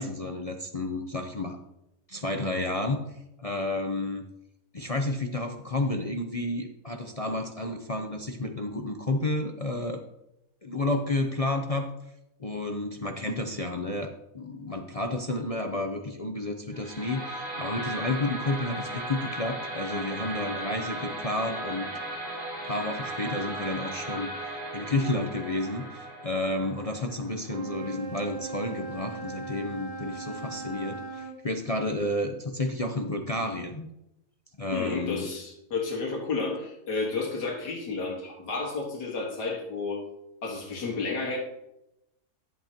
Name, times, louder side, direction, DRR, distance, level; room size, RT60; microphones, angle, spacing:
voice 1, 0.0-1.6 2.1-4.2 4.7-10.0 10.6-11.9 12.4-21.9 22.2-22.3 22.7-24.3 24.7-33.9 34.6-35.3, left 2 dB, 55° left, 3 dB, 0.4 m, -31 dB
sound 1, 16.7-27.8, right 1 dB, 65° right, 3.2 m, -36 dB
Wind instrument woodwind instrument, 27.4-31.4, right 3 dB, 30° right, 1.1 m, -38 dB
voice 2, 34.7-40.0 40.4-41.4, left 4 dB, 85° left, -1 dB, 2.3 m, -31 dB
11.0 x 8.1 x 2.9 m, 0.86 s
omnidirectional pair, 1.7 m